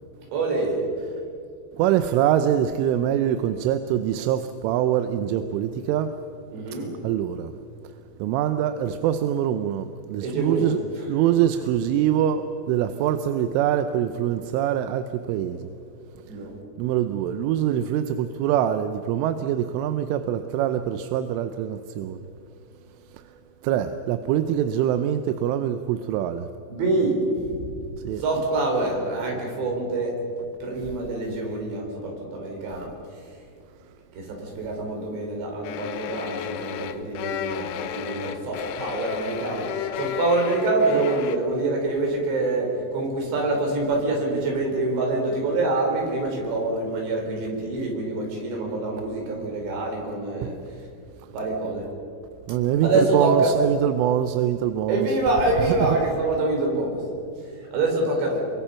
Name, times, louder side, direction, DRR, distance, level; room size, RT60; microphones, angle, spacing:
voice 1, 0.3-0.8 6.5-6.9 10.2-10.7 16.3-16.5 26.7-27.2 27.6-27.7 28.2-30.2 30.6-32.9 34.2-39.7 40.0-50.6 51.3-51.9 52.8-53.5 54.9-57.0 57.7-58.5, right 2 dB, 60° right, 0 dB, 6.6 m, -25 dB
voice 2, 1.8-6.1 7.0-7.5 8.2-10.8 11.1-15.7 16.8-22.3 23.6-26.5 28.0-28.2 50.4-50.6 52.5-55.1 55.8-56.0, right 10 dB, 80° right, 9 dB, 3.1 m, -24 dB
sound 1, 35.6-41.4, left 9 dB, 85° left, 3.7 m, -33 dB
28.5 x 24.0 x 5.8 m, 2.4 s
omnidirectional pair, 5.9 m